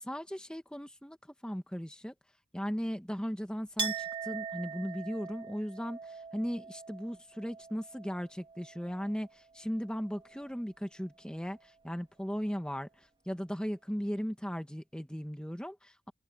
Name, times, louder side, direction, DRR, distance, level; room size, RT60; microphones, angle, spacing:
voice 1, 0.0-1.2 1.4-2.1 2.5-16.1, equal, 5° left, 1.2 m, -37 dB
Chink clink, 3.8-9.3 9.6-10.5, right 5 dB, 25° right, 2.3 m, -42 dB
open air
head